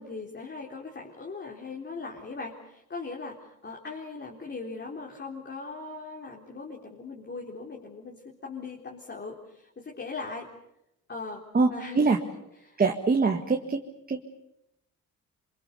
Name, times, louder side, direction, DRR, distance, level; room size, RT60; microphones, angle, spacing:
voice 1, 0.0-10.5 11.1-11.4 11.7-12.1 12.6-12.8, left 4 dB, 35° left, -1 dB, 4.0 m, -39 dB
voice 2, 12.8-13.8 14.1-14.2, right 4 dB, 30° right, 3 dB, 1.9 m, -23 dB
27.0 x 24.5 x 7.0 m, 0.84 s
cardioid pair, 90°, 30 cm